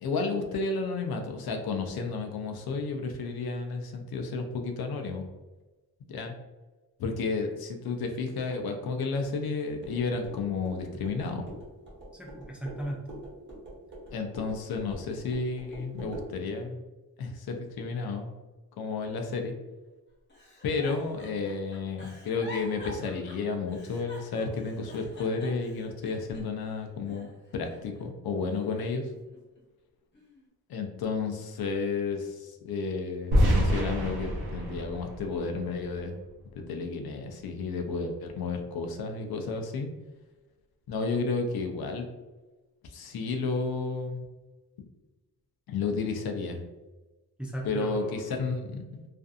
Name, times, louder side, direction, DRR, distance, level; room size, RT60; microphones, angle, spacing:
voice 1, 0.0-5.3 6.1-6.3 7.0-11.5 14.1-16.8 17.2-18.3 18.8-19.5 20.6-29.1 30.7-36.2 36.5-39.9 40.9-42.1 42.9-44.2 45.7-46.7 47.6-49.1, left 4 dB, 80° left, 4 dB, 0.5 m, -32 dB
sound 1, 9.8-16.3, right 1 dB, 30° right, 0.9 m, -45 dB
voice 2, 12.1-13.2 47.4-48.6, right 1 dB, 5° right, -2 dB, 0.3 m, -37 dB
Giggle, 20.3-26.7 27.1-28.0 28.5-29.6 30.1-30.5, left 1 dB, 30° left, 0.7 m, -47 dB
sound 2, 33.3-36.3, equal, 80° right, 0.7 m, -27 dB
2.5 x 2.5 x 2.4 m, 1.2 s
wide cardioid pair, 150°, 36 cm